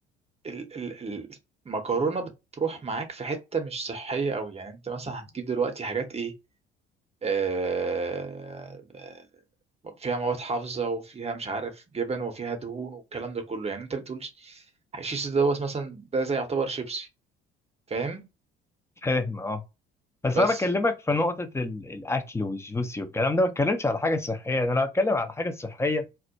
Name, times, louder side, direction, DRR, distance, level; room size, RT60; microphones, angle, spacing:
voice 1, 0.4-1.4 1.7-2.3 2.6-6.3 7.2-9.2 9.8-14.6 14.9-17.1 17.9-18.2 20.3-20.6, right 4 dB, 20° right, 0.7 m, -30 dB
voice 2, 19.0-19.6 20.2-26.1, left 2 dB, 10° left, 0.5 m, -26 dB
2.2 x 2.1 x 2.7 m
hypercardioid pair, 55°, 29 cm